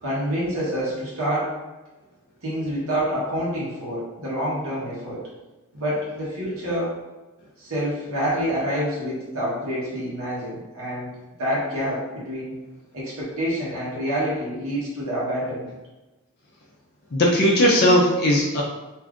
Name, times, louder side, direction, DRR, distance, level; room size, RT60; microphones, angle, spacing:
voice 1, 0.0-1.5 2.4-5.3 5.7-7.0 7.6-11.1 11.4-12.5 12.9-15.7, equal, 70° right, -7 dB, 1.0 m, -27 dB
voice 2, 17.1-18.6, equal, 45° left, -3 dB, 0.5 m, -18 dB
2.6 x 2.4 x 3.5 m, 1.1 s
head